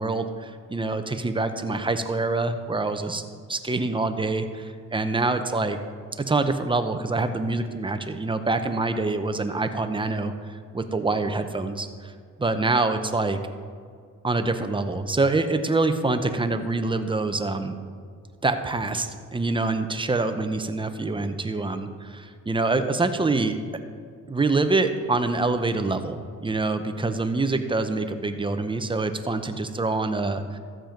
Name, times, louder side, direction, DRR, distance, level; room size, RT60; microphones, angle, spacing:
voice 1, 0.0-3.2 3.5-5.8 6.2-10.3 10.7-12.1 12.4-13.4 14.2-17.8 18.4-23.6 24.3-30.6, right 3 dB, 15° right, 8 dB, 0.9 m, -25 dB
13.5 x 7.7 x 5.2 m, 2.1 s
cardioid pair, 90°, 30 cm